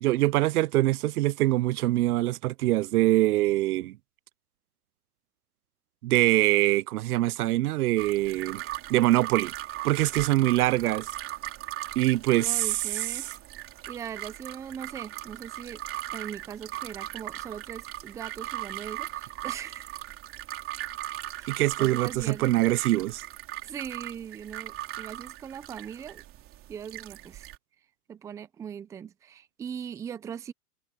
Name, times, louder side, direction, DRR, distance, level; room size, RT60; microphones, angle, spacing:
voice 1, 0.0-4.0 6.0-8.6 8.9-9.5 9.8-11.1 12.0-12.8 21.5-23.2, right 16 dB, 75° right, 0.5 m, -24 dB
sound 1, 8.0-27.6, right 14 dB, 30° right, 3.3 m, -39 dB
voice 2, 12.3-13.3 13.9-15.8 16.1-19.9 21.3-22.6 23.6-26.2 26.7-27.5 28.1-30.5, right 8 dB, 5° right, 0.5 m, -40 dB
hypercardioid pair, 135°, 46 cm